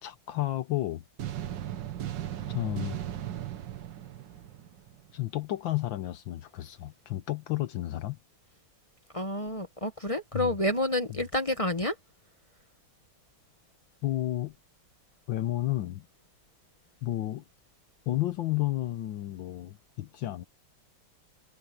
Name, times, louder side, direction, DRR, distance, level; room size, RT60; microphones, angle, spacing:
voice 1, 0.0-1.0 2.5-3.0 5.1-8.2 10.3-10.5 14.0-14.5 15.3-16.0 17.0-17.4 18.1-20.4, left 15 dB, 70° left, 1.5 m, -31 dB
sound 1, 1.2-5.2, right 11 dB, 65° right, 1.7 m, -37 dB
voice 2, 9.1-12.0, left 1 dB, 25° left, 0.7 m, -29 dB
omnidirectional pair, 2.2 m